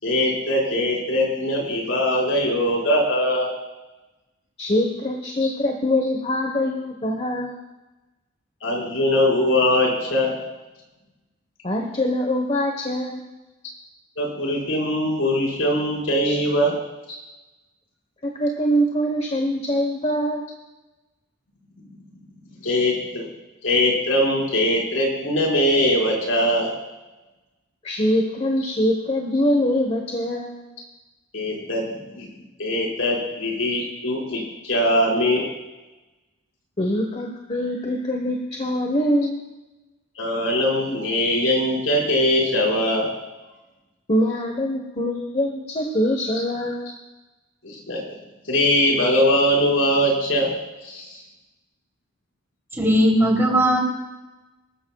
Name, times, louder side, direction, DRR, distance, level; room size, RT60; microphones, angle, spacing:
voice 1, 0.0-3.5 5.4-5.5 8.6-10.3 14.2-16.7 17.1-17.2 22.6-23.2 23.6-26.7 31.3-32.3 32.6-35.5 40.2-43.1 47.6-48.0 48.5-50.5 50.8-51.2, left 1 dB, 75° left, -3 dB, 5.3 m, -21 dB
voice 2, 4.6-7.5 11.6-13.2 16.2-16.4 18.3-20.4 27.8-30.5 36.8-39.4 44.1-46.9, equal, 30° left, 2 dB, 1.2 m, -23 dB
voice 3, 52.8-53.8, equal, 15° right, -2 dB, 3.1 m, -18 dB
25.0 x 14.0 x 2.4 m, 1.1 s
head